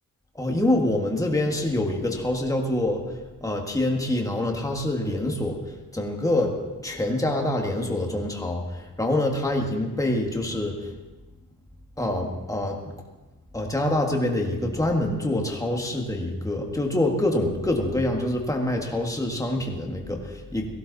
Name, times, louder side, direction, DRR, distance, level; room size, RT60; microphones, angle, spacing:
voice 1, 0.4-6.5 6.8-10.9 12.0-12.9 13.5-20.7, left 1 dB, 10° left, 1 dB, 1.8 m, -26 dB
18.0 x 15.5 x 4.1 m, 1.2 s
wide cardioid pair, 160°, 36 cm